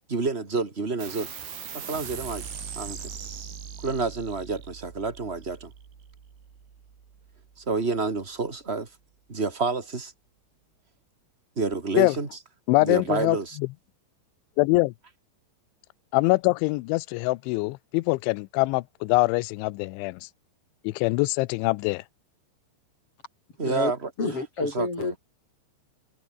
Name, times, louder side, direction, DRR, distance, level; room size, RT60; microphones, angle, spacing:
voice 1, 0.1-1.3 1.9-2.5 2.7-3.0 3.8-5.7 7.7-8.9 9.3-10.1 11.6-12.3 12.8-13.6 23.6-24.1 24.6-25.1, right 4 dB, 15° right, 2.4 m, -28 dB
sound 1, 1.0-7.9, right 7 dB, 75° right, 7.1 m, -41 dB
voice 2, 12.7-13.7 14.6-14.9 16.1-20.3 20.8-22.0, left 23 dB, 85° left, 3.0 m, -24 dB
voice 3, 24.2-25.2, left 3 dB, 30° left, 6.7 m, -28 dB
omnidirectional pair, 5.4 m